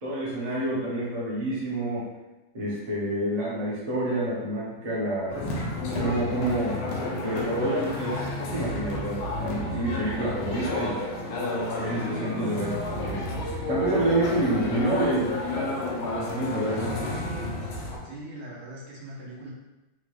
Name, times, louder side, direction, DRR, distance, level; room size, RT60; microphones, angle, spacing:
voice 1, 0.0-2.1 2.5-6.8 7.2-11.0 11.8-13.2 13.7-15.6 15.9-16.9, right 1 dB, 30° right, -6 dB, 0.7 m, -28 dB
sound 1, 5.3-18.0, left 1 dB, 85° left, 1.6 m, -31 dB
voice 2, 15.0-16.2 18.0-19.5, right 1 dB, 75° right, -6 dB, 1.8 m, -42 dB
4.5 x 2.4 x 3.2 m, 1.0 s
omnidirectional pair, 2.2 m